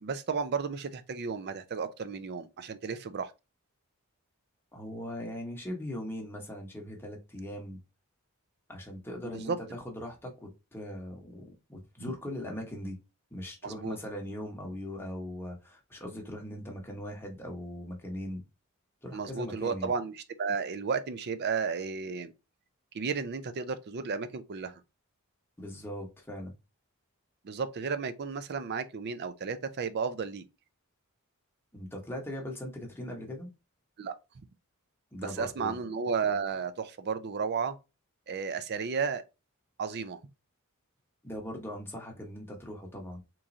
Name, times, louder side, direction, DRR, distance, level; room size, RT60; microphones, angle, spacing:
voice 1, 0.0-3.3 9.2-9.6 13.6-14.0 19.1-22.3 22.9-24.8 27.4-30.4 34.0-34.1 35.2-37.8 38.3-39.2 39.8-40.2, right 5 dB, 50° right, 0.4 m, -33 dB
voice 2, 4.7-7.8 8.7-13.0 13.3-18.4 19.0-19.9 25.6-26.5 31.7-33.5 35.1-35.8 41.2-43.2, left 1 dB, 10° left, 0.9 m, -40 dB
3.7 x 3.0 x 2.6 m
head